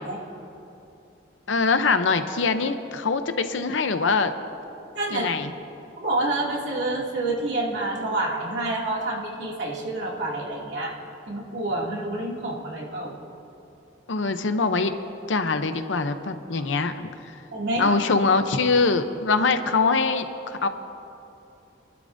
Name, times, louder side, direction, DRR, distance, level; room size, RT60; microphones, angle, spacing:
voice 1, 1.5-4.3 5.1-5.5 14.1-14.9 15.3-16.9 17.8-20.7, left 4 dB, 80° left, 9 dB, 0.7 m, -23 dB
voice 2, 4.9-5.3 6.0-11.0 11.3-13.2 17.5-18.0, right 2 dB, 70° right, -4 dB, 2.5 m, -28 dB
28.0 x 12.0 x 2.7 m, 2.8 s
head